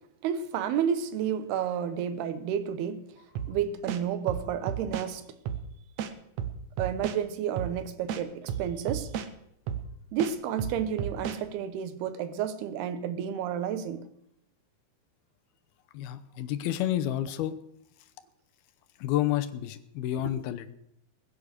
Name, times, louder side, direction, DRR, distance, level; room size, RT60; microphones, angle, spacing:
voice 1, 0.2-3.0 3.5-5.2 6.8-9.1 10.1-14.1, right 8 dB, 90° right, 3.1 m, -31 dB
sound 1, 3.4-3.5 3.9-5.1 5.5-5.6 6.0-7.2 7.6-7.7 8.1-9.3 9.7-9.9 10.2-11.4, right 9 dB, 70° right, 1.7 m, -33 dB
voice 2, 15.9-17.5 19.0-20.7, left 12 dB, 80° left, 2.8 m, -30 dB
21.0 x 8.8 x 6.6 m
omnidirectional pair, 4.4 m